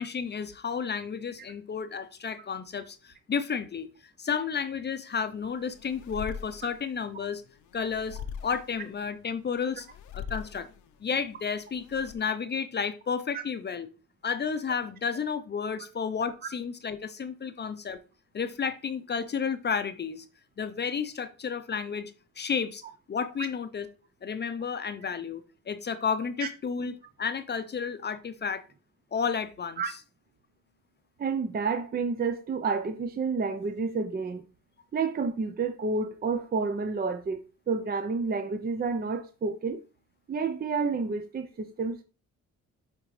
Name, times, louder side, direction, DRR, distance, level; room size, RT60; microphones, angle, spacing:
voice 1, 0.0-3.9 4.2-7.4 7.7-9.9 10.1-10.7 11.0-13.9 14.2-18.0 18.3-20.3 20.6-22.8 23.1-23.9 24.2-28.6 29.1-30.0, left 6 dB, 35° left, 0.6 m, -32 dB
sound 1, 5.2-12.1, left 7 dB, 75° left, 0.7 m, -43 dB
voice 2, 31.2-34.4 34.9-39.8 40.3-42.0, right 4 dB, 30° right, 0.6 m, -30 dB
8.8 x 3.6 x 3.2 m
cardioid pair, 90°, 30 cm